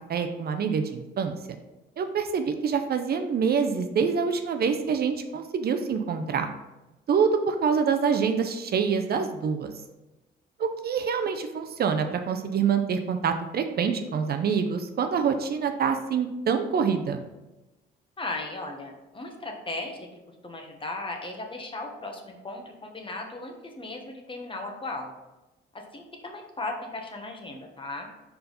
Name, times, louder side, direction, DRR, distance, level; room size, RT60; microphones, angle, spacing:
voice 1, 0.1-1.3 2.0-6.5 7.1-9.7 10.6-17.2, right 6 dB, 50° right, 6 dB, 0.6 m, -26 dB
voice 2, 18.2-20.1 20.4-25.1 25.7-28.1, left 2 dB, 25° left, 2 dB, 1.1 m, -36 dB
5.2 x 4.7 x 3.9 m, 1.0 s
cardioid pair, 90°, 20 cm